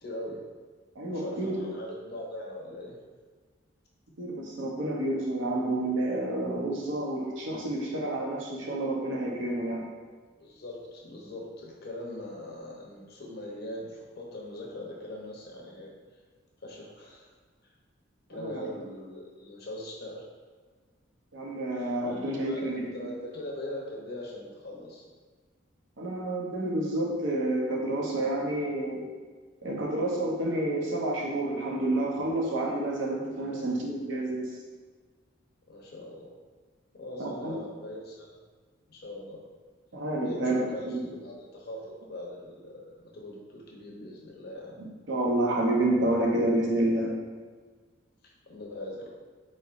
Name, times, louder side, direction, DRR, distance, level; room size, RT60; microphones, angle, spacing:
voice 1, 0.0-0.4 1.1-3.0 7.0-7.1 10.4-15.9 16.6-17.3 18.3-20.3 21.7-25.1 33.4-33.9 35.7-36.3 36.9-38.4 38.9-39.4 40.2-44.8 48.2-49.1, left 1 dB, 55° left, -2 dB, 0.7 m, -41 dB
voice 2, 1.0-1.5 4.2-9.9 18.3-18.6 21.3-23.1 26.0-29.0 29.6-34.4 37.2-37.6 39.9-40.6 40.8-41.0 45.1-47.1, right 1 dB, 65° right, -2 dB, 0.7 m, -29 dB
3.8 x 3.3 x 2.4 m, 1.5 s
head